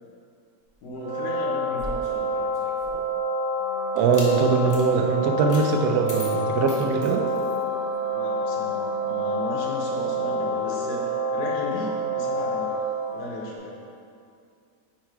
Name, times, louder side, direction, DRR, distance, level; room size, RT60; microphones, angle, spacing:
voice 1, 0.8-2.2 8.1-12.8 13.1-13.8, equal, 80° left, -3 dB, 1.5 m, -35 dB
sound 1, 1.0-12.8, equal, 55° right, 0.8 m, -27 dB
sound 2, 1.6-3.2 3.9-4.3 4.7-4.9 5.5-5.6 6.1-7.6, left 1 dB, 15° left, 0.7 m, -39 dB
sound 3, 3.6-13.6, left 1 dB, 65° left, 1.7 m, -42 dB
voice 2, 3.9-7.2, right 5 dB, 85° right, 4 dB, 1.1 m, -22 dB
4.7 x 4.5 x 4.6 m, 2.3 s
omnidirectional pair, 1.6 m